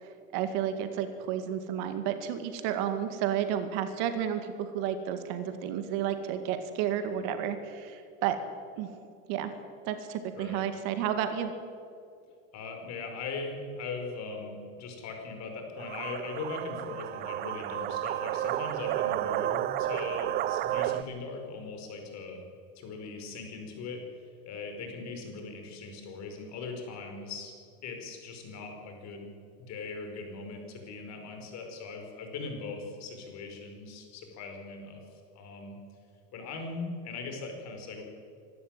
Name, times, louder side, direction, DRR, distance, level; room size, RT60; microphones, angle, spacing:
voice 1, 0.0-8.4 8.8-8.9 9.3-9.5 9.8-11.5, right 9 dB, 50° right, 8 dB, 2.2 m, -31 dB
voice 2, 10.4-10.7 12.5-22.4 22.8-24.0 24.5-27.5 27.8-29.3 29.7-35.8 36.3-38.0, left 4 dB, 40° left, 3 dB, 5.2 m, -40 dB
sound 1, 15.8-21.0, right 13 dB, 25° right, 0.5 m, -31 dB
24.5 x 12.5 x 9.2 m, 2.4 s
supercardioid pair, 145°, 42 cm